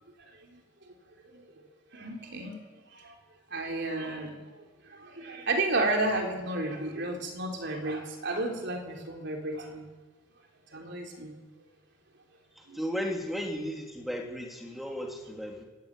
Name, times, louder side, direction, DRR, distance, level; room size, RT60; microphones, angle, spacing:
voice 1, 1.9-2.6 2.9-3.2 3.5-4.4 4.8-9.8 10.7-11.3 12.7-12.8, right 2 dB, 55° right, 2 dB, 3.8 m, -32 dB
voice 2, 12.6-15.6, equal, ahead, 1 dB, 3.1 m, -35 dB
26.5 x 15.5 x 9.0 m, 1.3 s
head